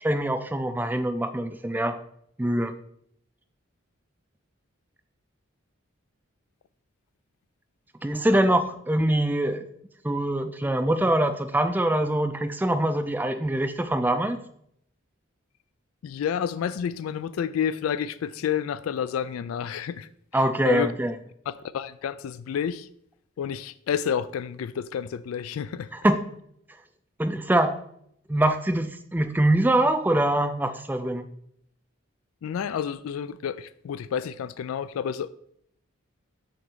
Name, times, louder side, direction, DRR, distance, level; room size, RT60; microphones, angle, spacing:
voice 1, 0.0-2.0 2.4-2.7 8.0-9.7 10.0-14.4 20.3-21.1 25.9-26.2 27.2-27.8 28.3-31.3, right 1 dB, 10° right, 0.3 m, -24 dB
voice 2, 16.0-20.9 21.5-22.9 23.4-25.9 32.4-35.3, left 8 dB, 90° left, 0.3 m, -30 dB
6.4 x 3.8 x 6.2 m
head